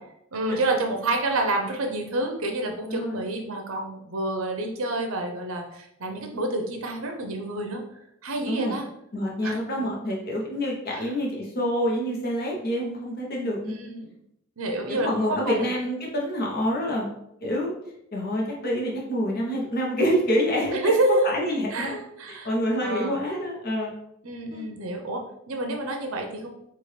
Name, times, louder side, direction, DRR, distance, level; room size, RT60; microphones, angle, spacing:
voice 1, 0.3-7.8 8.2-8.9 9.4-9.6 10.9-11.1 13.6-14.1 14.6-15.7 20.7-21.2 21.7-22.5 22.8-23.2 24.2-26.5, right 2 dB, 75° right, 3 dB, 0.8 m, -28 dB
voice 2, 8.4-8.8 9.1-13.8 14.9-17.1 17.4-17.7 18.1-20.9 21.2-21.9 22.3-24.0 24.5-24.7, equal, 45° left, -2 dB, 0.9 m, -27 dB
4.7 x 2.5 x 3.2 m, 0.77 s
head